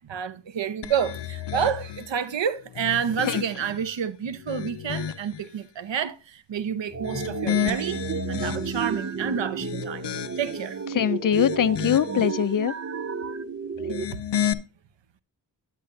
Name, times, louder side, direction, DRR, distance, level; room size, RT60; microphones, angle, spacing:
voice 1, 0.1-8.0 8.3-10.1 10.4-10.8, right 8 dB, 75° right, 0.9 m, -29 dB
sound 1, 0.8-2.1 2.7-3.8 4.3-5.4 6.9-9.0 9.5-10.7 11.2-12.3 13.7-14.5, left 10 dB, 65° left, 0.8 m, -32 dB
sound 2, 6.9-14.1, right 6 dB, 35° right, 0.6 m, -32 dB
voice 2, 10.9-12.7 13.8-14.2, left 9 dB, 50° left, 0.4 m, -23 dB
9.9 x 9.2 x 2.5 m
wide cardioid pair, 105°, 44 cm